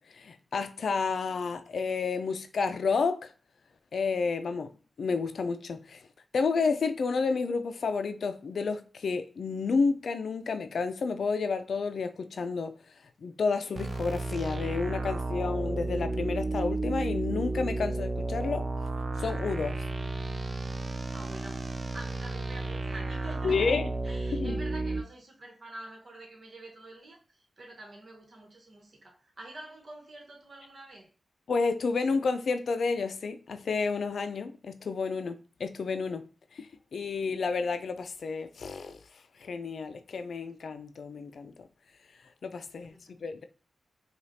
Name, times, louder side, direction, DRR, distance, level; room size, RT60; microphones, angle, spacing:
voice 1, 0.1-3.3 3.9-4.7 5.0-6.1 6.3-12.7 13.2-18.6 19.2-19.8 23.4-23.9 24.3-24.6 31.5-39.0 39.4-41.7 42.4-43.4, left 4 dB, 70° left, 0.4 m, -30 dB
sound 1, 13.8-25.0, right 2 dB, 45° right, 0.5 m, -32 dB
voice 2, 20.9-23.8 24.0-31.1 43.0-43.3, right 2 dB, 60° right, 1.2 m, -47 dB
4.8 x 2.4 x 2.8 m
supercardioid pair, 40°, 0 cm